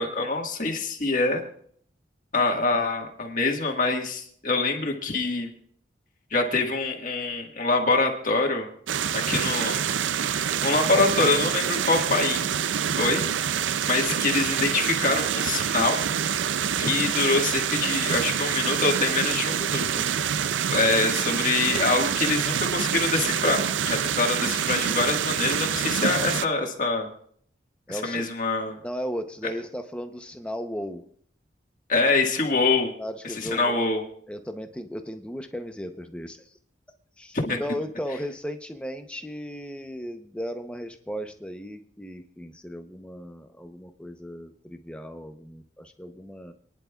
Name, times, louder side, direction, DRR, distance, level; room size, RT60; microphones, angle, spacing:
voice 1, 0.0-1.4 2.3-5.5 6.3-8.7 9.1-9.9 10.6-12.6 13.0-13.2 13.9-16.0 16.8-20.0 20.7-27.1 27.9-28.8 31.9-32.9 33.5-34.0 37.3-37.6, left 3 dB, 45° left, 2 dB, 1.7 m, -25 dB
sound 1, 8.9-26.5, right 8 dB, 90° right, 0.4 m, -26 dB
voice 2, 27.9-28.3 28.8-31.0 32.5-32.6 33.0-33.8 34.3-36.6 37.2-46.5, equal, 5° left, 6 dB, 0.7 m, -36 dB
28.0 x 10.5 x 2.4 m, 0.62 s
head